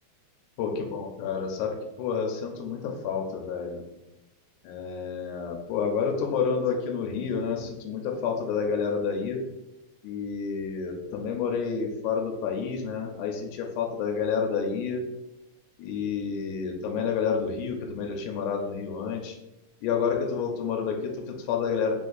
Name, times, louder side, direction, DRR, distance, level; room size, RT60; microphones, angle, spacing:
voice 1, 0.6-3.8 4.6-9.4 10.0-15.0 15.8-19.4 19.8-21.9, left 6 dB, 90° left, 2 dB, 2.1 m, -29 dB
4.8 x 2.5 x 3.8 m, 0.96 s
omnidirectional pair, 3.5 m